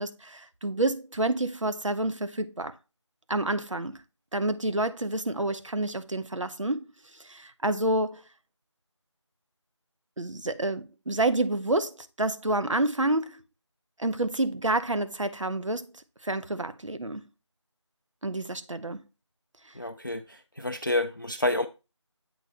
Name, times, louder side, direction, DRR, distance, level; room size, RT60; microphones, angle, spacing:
voice 1, 0.0-2.7 3.3-4.0 4.3-6.9 7.1-8.2 10.2-13.4 14.0-15.9 16.2-17.3 18.2-19.1, right 2 dB, 85° right, 0.7 m, -28 dB
voice 2, 19.7-21.7, left 1 dB, 40° left, 0.3 m, -29 dB
8.0 x 2.7 x 4.5 m
figure-of-eight pair, 170°, 16 cm